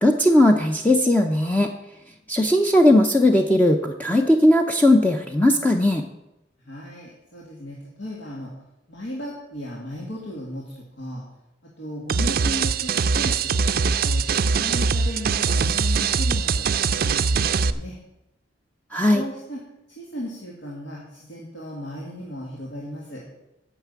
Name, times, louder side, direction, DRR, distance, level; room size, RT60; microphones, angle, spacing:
voice 1, 0.0-1.7 2.3-6.0 18.9-19.2, left 1 dB, 10° left, 3 dB, 0.6 m, -18 dB
voice 2, 6.6-8.5 8.9-11.2 11.8-13.6 13.9-18.0 19.1-19.6 19.9-23.2, equal, 75° left, -3 dB, 2.0 m, -36 dB
sound 1, 12.1-17.7, right 5 dB, 55° right, 0.4 m, -22 dB
9.3 x 5.9 x 8.3 m, 0.92 s
head